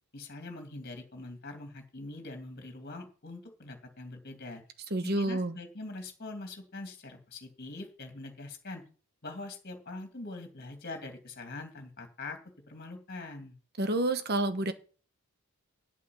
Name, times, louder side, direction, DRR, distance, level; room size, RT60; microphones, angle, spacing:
voice 1, 0.1-4.6 5.0-8.8 9.2-12.4 12.7-13.6, left 2 dB, 45° left, 4 dB, 2.5 m, -43 dB
voice 2, 4.9-5.6 13.8-14.7, right 1 dB, 45° right, 10 dB, 1.2 m, -29 dB
8.8 x 8.5 x 7.1 m, 0.39 s
head